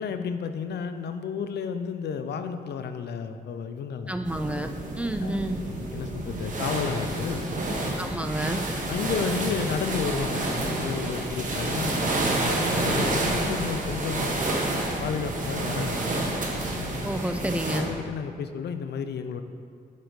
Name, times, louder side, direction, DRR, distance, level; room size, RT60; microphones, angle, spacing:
voice 1, 0.0-4.1 5.2-5.4 5.6-7.5 8.9-12.1 12.5-14.4 15.0-16.0 16.7-17.0 17.7-19.4, left 6 dB, 90° left, 9 dB, 0.5 m, -32 dB
voice 2, 4.1-4.7 5.0-5.6 8.0-8.6 17.0-17.9, right 1 dB, 10° right, 7 dB, 0.3 m, -30 dB
sound 1, 4.3-17.8, right 2 dB, 50° right, 1.1 m, -29 dB
7.5 x 5.2 x 4.7 m, 2.4 s
wide cardioid pair, 120°, 17 cm